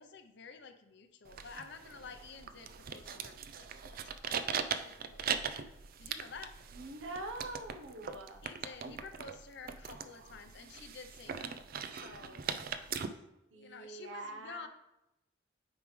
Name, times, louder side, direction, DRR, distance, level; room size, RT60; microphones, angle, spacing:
voice 1, 0.0-5.7 6.0-6.6 8.4-13.1 13.5-14.7, left 5 dB, 65° left, 8 dB, 0.7 m, -51 dB
sound 1, 1.2-13.1, right 7 dB, 50° right, 0.4 m, -40 dB
voice 2, 6.7-8.4 13.5-14.7, right 2 dB, 80° right, 4 dB, 0.9 m, -44 dB
9.2 x 4.7 x 3.2 m, 0.88 s
head